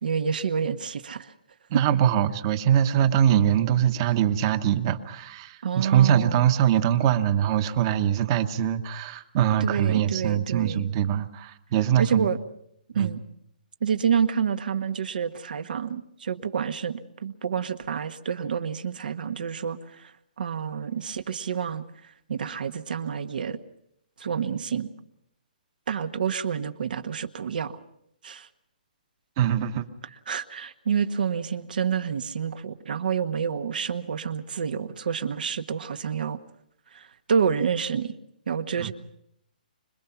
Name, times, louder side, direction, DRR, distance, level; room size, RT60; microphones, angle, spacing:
voice 1, 0.0-1.3 1.7-1.8 5.6-6.5 9.6-10.9 12.0-12.4 12.9-13.2 13.8-23.6 24.2-24.9 25.9-27.8 28.2-28.5 30.3-36.4 36.9-38.1 38.5-38.9, right 7 dB, 70° right, 8 dB, 1.5 m, -28 dB
voice 2, 1.7-12.3 12.9-13.1 29.4-29.8 38.8-38.9, right 10 dB, 30° right, 10 dB, 1.2 m, -23 dB
26.0 x 21.0 x 5.9 m, 0.76 s
hypercardioid pair, 165°, 5 cm